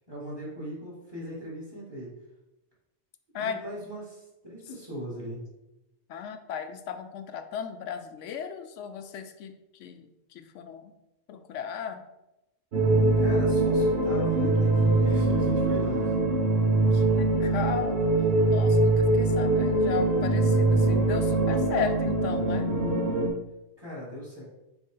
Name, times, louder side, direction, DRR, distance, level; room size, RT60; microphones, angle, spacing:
voice 1, 0.0-2.1 3.4-5.4 13.2-16.1 23.8-24.4, equal, 20° right, -6 dB, 2.3 m, -39 dB
voice 2, 6.1-10.9 11.3-12.0 16.9-18.0 18.5-22.7, left 7 dB, 85° left, 8 dB, 0.9 m, -35 dB
sound 1, 12.7-23.3, right 2 dB, 60° right, 1.2 m, -23 dB
6.0 x 4.5 x 3.9 m, 0.93 s
omnidirectional pair, 1.2 m